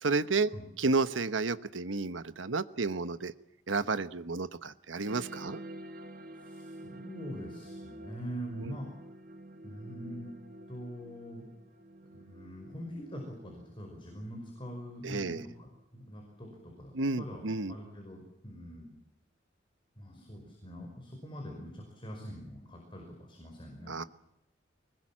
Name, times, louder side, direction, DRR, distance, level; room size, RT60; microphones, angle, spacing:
voice 1, 0.0-0.5 0.8-3.3 3.7-5.6 8.6-8.8 15.0-15.4 16.9-17.8 23.9-24.0, right 3 dB, 90° right, 13 dB, 1.1 m, -31 dB
sound 1, 5.1-16.1, right 1 dB, 50° right, 2.1 m, -49 dB
voice 2, 6.3-8.9 9.6-10.3 10.7-11.5 12.1-19.0 20.0-23.9, equal, 25° left, 1 dB, 5.4 m, -44 dB
24.0 x 21.0 x 7.5 m, 0.83 s
head